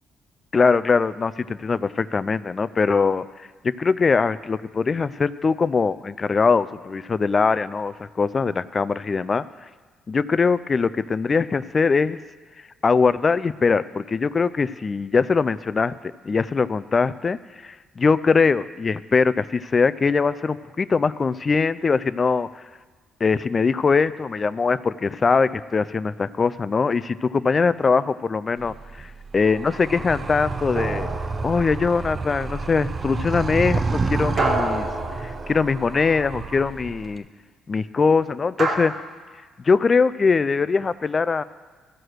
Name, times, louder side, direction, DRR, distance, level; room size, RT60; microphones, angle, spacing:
voice 1, 0.5-3.2 3.6-9.4 10.1-12.2 12.8-22.5 23.2-29.1 29.3-31.1 31.4-34.9 35.2-37.2 37.7-38.9 39.6-41.4, left 4 dB, 35° left, 15 dB, 0.3 m, -22 dB
Animal, 28.6-37.2, right 4 dB, 35° right, 0.6 m, -29 dB
sound 1, 30.8-32.0 34.4-36.0 38.6-38.8, right 2 dB, 55° right, 1.5 m, -28 dB
14.5 x 4.8 x 6.3 m, 1.4 s
cardioid pair, 85°, 0 cm